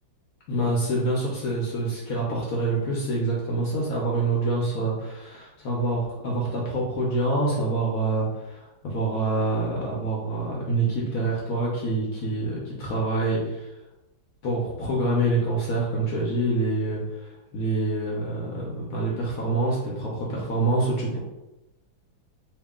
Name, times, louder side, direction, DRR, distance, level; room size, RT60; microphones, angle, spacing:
voice 1, 0.5-13.7 14.4-21.2, right 2 dB, 60° left, -3 dB, 0.9 m, -26 dB
3.0 x 2.8 x 3.5 m, 0.97 s
omnidirectional pair, 2.1 m